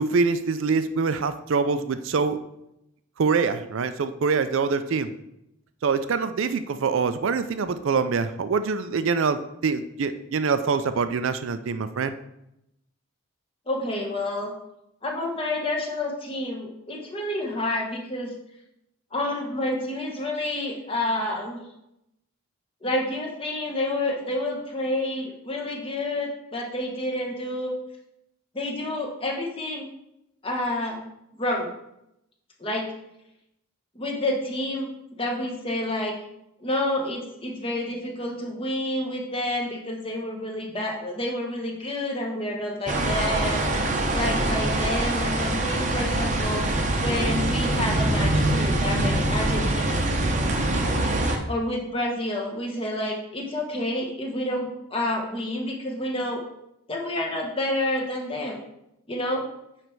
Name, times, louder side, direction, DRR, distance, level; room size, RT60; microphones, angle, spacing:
voice 1, 0.0-2.4 3.2-5.1 5.8-12.1, right 5 dB, 60° right, 11 dB, 0.4 m, -24 dB
voice 2, 13.7-14.5 15.0-18.3 19.1-21.6 22.8-27.7 28.5-29.9 30.4-31.0 31.3-31.7 32.6-32.9 33.9-34.9 35.2-36.1 36.6-43.6 44.1-46.6 47.0-50.0 51.5-56.4 56.9-58.6 59.1-59.4, left 1 dB, 25° left, 0 dB, 1.1 m, -29 dB
sound 1, 42.9-51.4, right 1 dB, 35° right, 0.7 m, -24 dB
9.1 x 3.3 x 4.6 m, 0.83 s
head